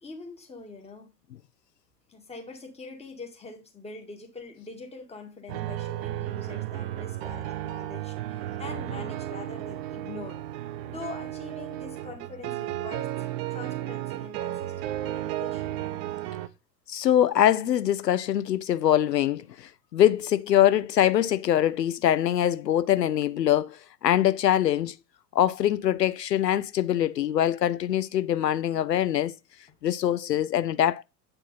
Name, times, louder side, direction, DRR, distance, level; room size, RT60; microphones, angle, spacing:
voice 1, 0.0-1.1 2.1-10.5 10.8-15.8 22.0-22.1, left 3 dB, 10° left, 2.0 m, -43 dB
sound 1, 5.5-16.5, right 13 dB, 40° right, 0.7 m, -34 dB
voice 2, 16.9-25.0 25.3-29.3 29.8-31.0, left 11 dB, 80° left, 0.6 m, -23 dB
8.6 x 4.5 x 4.1 m
figure-of-eight pair, 90°, 49 cm